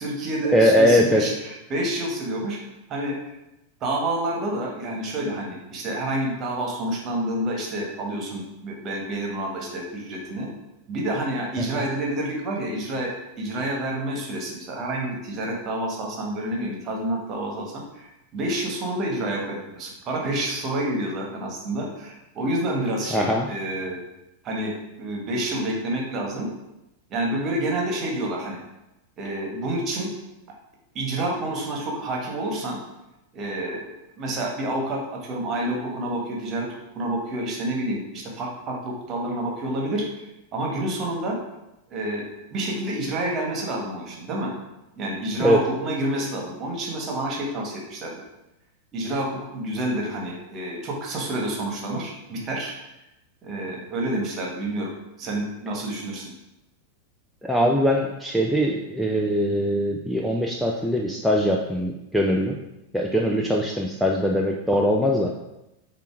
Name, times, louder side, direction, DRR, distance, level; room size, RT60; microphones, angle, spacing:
voice 1, 0.0-2.6 2.9-3.2 3.8-10.5 10.9-13.1 13.4-24.0 24.4-26.5 27.1-28.6 29.2-30.1 30.9-32.8 33.3-36.7 36.9-40.3 40.5-41.4 41.9-42.2 42.5-44.5 44.9-48.2 48.9-52.7 53.4-54.9 55.2-56.3, right 1 dB, 30° right, -1 dB, 1.6 m, -28 dB
voice 2, 0.5-1.2 11.7-11.8 23.1-23.5 45.4-45.6 57.4-62.6 62.9-65.4, equal, ahead, -1 dB, 0.5 m, -21 dB
6.9 x 2.9 x 4.8 m, 0.93 s
figure-of-eight pair, 90°, 0 cm